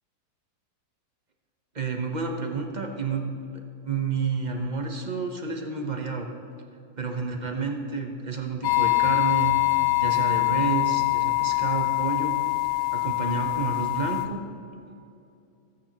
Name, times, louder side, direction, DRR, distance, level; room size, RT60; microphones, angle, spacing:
voice 1, 1.7-6.3 7.0-12.3 12.9-14.4, right 4 dB, 35° right, 2 dB, 0.8 m, -30 dB
sound 1, 8.6-14.3, left 21 dB, 70° left, 1.4 m, -24 dB
20.0 x 9.5 x 3.0 m, 2.7 s
omnidirectional pair, 2.1 m